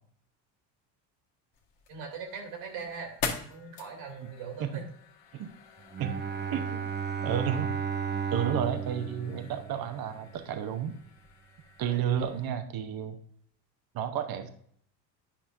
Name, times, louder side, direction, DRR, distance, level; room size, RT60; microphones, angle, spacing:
sound 1, 1.5-12.5, left 6 dB, 60° left, 1.6 m, -44 dB
voice 1, 1.9-3.1 3.5-4.8 11.8-12.0, right 5 dB, 70° right, 1 dB, 2.6 m, -40 dB
Bowed string instrument, 5.9-10.3, right 6 dB, 20° right, 0.7 m, -34 dB
voice 2, 6.5-6.8 7.2-7.7 8.3-11.0 11.8-13.2 13.9-14.5, right 9 dB, 45° right, 8 dB, 1.0 m, -31 dB
10.0 x 5.6 x 2.6 m, 0.64 s
hypercardioid pair, 65°, 50 cm